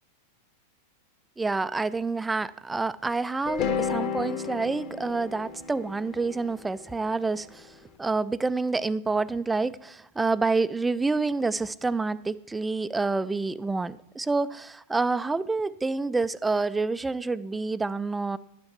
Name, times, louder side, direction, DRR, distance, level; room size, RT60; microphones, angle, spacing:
voice 1, 1.4-7.7 8.0-18.4, right 3 dB, 10° right, 16 dB, 0.4 m, -28 dB
sound 1, 3.5-7.6, left 6 dB, 40° left, 1.4 m, -32 dB
12.0 x 9.6 x 4.6 m, 0.83 s
figure-of-eight pair, 90°, 0 cm